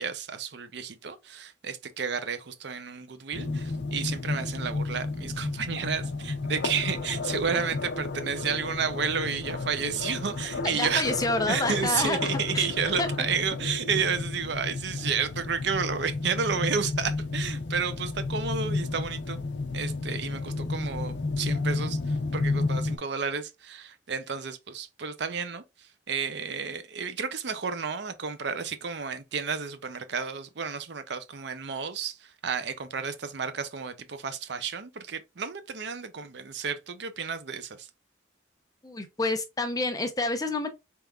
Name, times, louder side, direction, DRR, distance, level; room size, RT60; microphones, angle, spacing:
voice 1, 0.0-11.1 11.5-19.4 19.7-37.9, right 6 dB, 65° right, 0.6 m, -31 dB
sound 1, 3.3-23.0, left 3 dB, 65° left, 0.6 m, -32 dB
voice 2, 10.6-12.3 12.5-12.7 13.0-13.1 38.8-40.7, left 2 dB, 20° left, 0.6 m, -28 dB
4.4 x 3.5 x 2.3 m
head